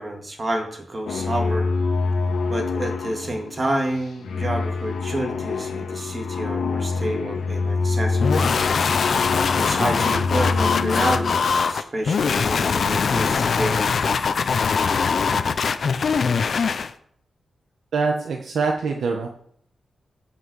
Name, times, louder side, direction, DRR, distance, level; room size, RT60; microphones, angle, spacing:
voice 1, 0.0-1.7 2.5-8.5 9.6-13.8, right 1 dB, 25° right, 3 dB, 2.0 m, -29 dB
sound 1, 1.1-11.6, left 4 dB, 75° left, 1.6 m, -26 dB
sound 2, 8.2-16.9, left 5 dB, 50° left, 0.7 m, -22 dB
voice 2, 17.9-19.3, right 4 dB, 75° right, 2 dB, 1.2 m, -24 dB
15.0 x 5.6 x 6.3 m, 0.65 s
wide cardioid pair, 165°, 0 cm